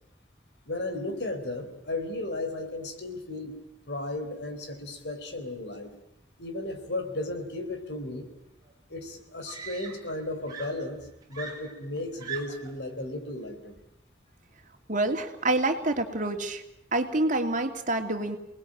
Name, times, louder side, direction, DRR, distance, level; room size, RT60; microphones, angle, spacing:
voice 1, 0.7-3.6 3.9-5.9 6.4-8.3 8.9-13.8, left 2 dB, 70° left, 7 dB, 4.2 m, -35 dB
Screaming, 8.6-8.7 9.5-10.2 10.5-12.8 13.8-14.0, right 6 dB, 20° right, 5.0 m, -41 dB
voice 2, 14.9-16.6 16.9-18.4, right 2 dB, 45° right, 5 dB, 2.8 m, -27 dB
29.5 x 20.0 x 8.9 m, 0.78 s
head